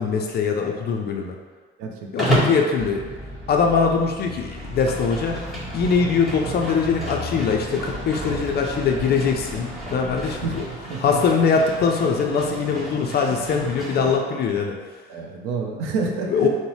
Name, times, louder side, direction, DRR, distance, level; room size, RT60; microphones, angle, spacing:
voice 1, 0.0-1.4 2.1-3.0 3.5-5.4 5.7-10.6 11.0-14.8 16.3-16.5, left 5 dB, 30° left, 2 dB, 0.4 m, -22 dB
voice 2, 1.8-2.6 10.3-10.6 10.9-11.2 15.1-16.5, right 4 dB, 60° right, 1 dB, 0.6 m, -29 dB
Livestock farm animals working animals, 2.2-2.6 4.4-14.2, right 1 dB, ahead, 1.4 m, -31 dB
Bus, 2.8-10.6, equal, 40° right, 1.1 m, -36 dB
3.7 x 2.1 x 2.9 m, 1.4 s
figure-of-eight pair, 60°, 32 cm